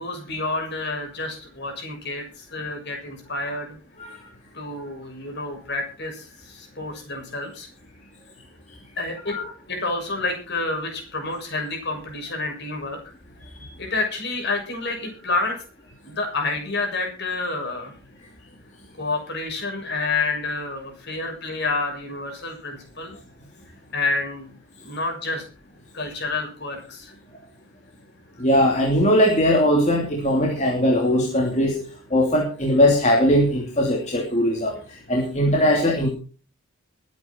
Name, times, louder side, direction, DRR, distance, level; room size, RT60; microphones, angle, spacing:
voice 1, 0.0-3.7 4.5-7.7 9.0-9.4 9.7-13.0 13.8-15.6 16.0-17.9 19.0-23.2 23.9-24.5 24.8-25.4 25.9-27.1, left 3 dB, 50° left, 3 dB, 6.9 m, -29 dB
voice 2, 28.4-31.8 32.1-34.8 35.1-36.1, equal, 30° left, 0 dB, 2.9 m, -20 dB
21.5 x 9.4 x 4.5 m, 0.37 s
head